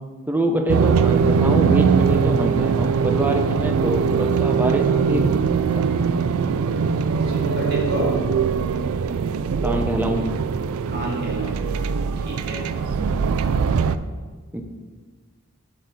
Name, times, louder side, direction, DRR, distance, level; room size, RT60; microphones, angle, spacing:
voice 1, 0.3-5.4 5.7-5.8 9.6-10.2 12.9-13.2 14.5-14.6, right 1 dB, 10° right, 4 dB, 0.7 m, -25 dB
sound 1, 0.7-13.9, right 6 dB, 75° right, 0.3 m, -21 dB
voice 2, 7.2-8.1 10.9-11.6 12.3-12.6, equal, 50° right, -4 dB, 2.2 m, -29 dB
7.6 x 6.3 x 4.1 m, 1.4 s
head